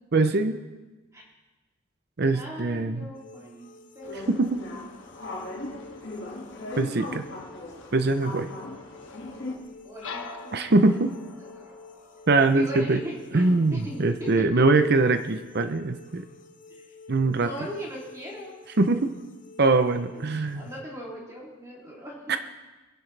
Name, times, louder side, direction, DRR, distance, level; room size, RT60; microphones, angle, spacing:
voice 1, 0.1-0.6 2.2-3.1 4.3-4.6 6.8-7.2 7.9-8.5 10.5-11.1 12.3-13.0 13.3-16.3 17.1-17.5 18.8-19.1 19.6-20.6 22.3-22.4, right 3 dB, 50° right, 9 dB, 0.6 m, -22 dB
voice 2, 2.3-3.7 3.9-4.4 9.8-10.7 11.5-11.7 12.5-14.3 16.7-16.8 17.4-18.6 19.7-22.1, equal, 15° right, -5 dB, 3.0 m, -39 dB
sound 1, 3.1-20.8, left 4 dB, 40° left, 0.7 m, -50 dB
sound 2, 4.0-9.6, left 2 dB, 55° left, 2.1 m, -38 dB
sound 3, 9.1-14.2, left 4 dB, 85° left, 1.1 m, -44 dB
21.0 x 10.5 x 3.3 m, 1.1 s
head